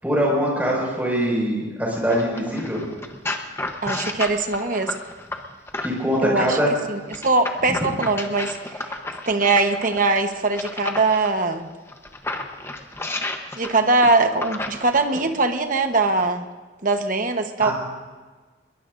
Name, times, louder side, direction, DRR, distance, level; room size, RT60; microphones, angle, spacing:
voice 1, 0.0-2.8 5.8-6.7 17.6-17.7, equal, 10° right, -3 dB, 5.7 m, -23 dB
sound 1, 2.1-6.2 7.1-11.3 11.9-15.3 16.1-16.2, left 2 dB, 15° left, 1.0 m, -32 dB
voice 2, 3.8-4.9 6.2-6.6 6.9-8.8 9.3-11.7 13.6-16.5 16.8-17.7, right 3 dB, 45° right, 6 dB, 1.1 m, -21 dB
22.0 x 22.0 x 2.6 m, 1.4 s
head